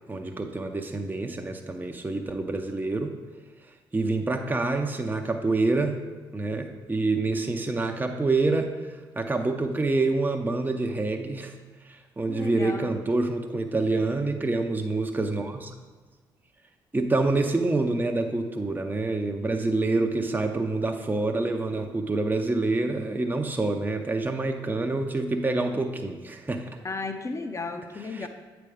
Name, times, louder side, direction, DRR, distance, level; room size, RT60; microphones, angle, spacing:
voice 1, 0.1-3.1 3.9-6.0 6.3-8.7 9.2-11.5 11.8-15.7 16.9-26.8 28.0-28.3, right 2 dB, 15° right, 4 dB, 0.7 m, -27 dB
voice 2, 12.3-13.0 26.8-28.3, left 3 dB, 25° left, 6 dB, 0.7 m, -34 dB
8.3 x 3.4 x 4.9 m, 1.4 s
hypercardioid pair, 40°, 12 cm